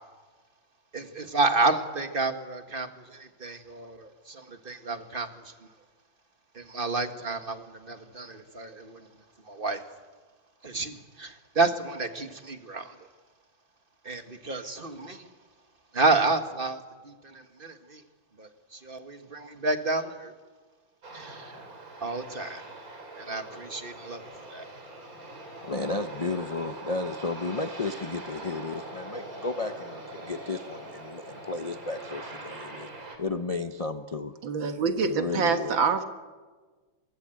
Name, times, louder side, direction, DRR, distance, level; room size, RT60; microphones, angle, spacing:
voice 1, 0.9-5.5 6.5-9.1 9.5-9.8 10.6-13.0 14.0-15.3 15.9-18.0 18.4-20.3 21.1-21.6 22.0-22.6 23.2-24.2 24.5-24.7, right 3 dB, 30° right, 8 dB, 1.7 m, -30 dB
Aircraft, 21.0-33.2, right 2 dB, 45° right, 4.4 m, -43 dB
voice 2, 25.6-32.9 33.2-34.3 35.0-35.8, left 3 dB, 35° left, 8 dB, 0.6 m, -33 dB
voice 3, 34.4-36.0, right 5 dB, 85° right, 8 dB, 2.4 m, -26 dB
23.5 x 23.0 x 9.1 m, 1.4 s
omnidirectional pair, 2.1 m